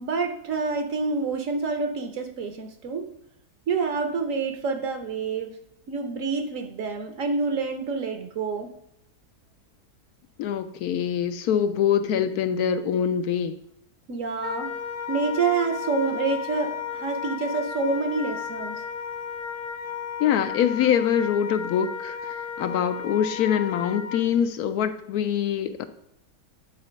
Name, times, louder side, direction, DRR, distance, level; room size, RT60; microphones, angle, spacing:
voice 1, 0.0-3.1 3.7-5.5 5.9-8.7 14.1-14.7 15.1-18.8, right 4 dB, 60° right, 6 dB, 1.1 m, -27 dB
voice 2, 10.4-13.5 20.2-25.8, left 9 dB, 75° left, 9 dB, 1.1 m, -24 dB
Wind instrument woodwind instrument, 14.4-24.3, left 7 dB, 50° left, 0.8 m, -34 dB
8.9 x 4.0 x 5.1 m, 0.77 s
omnidirectional pair, 1.7 m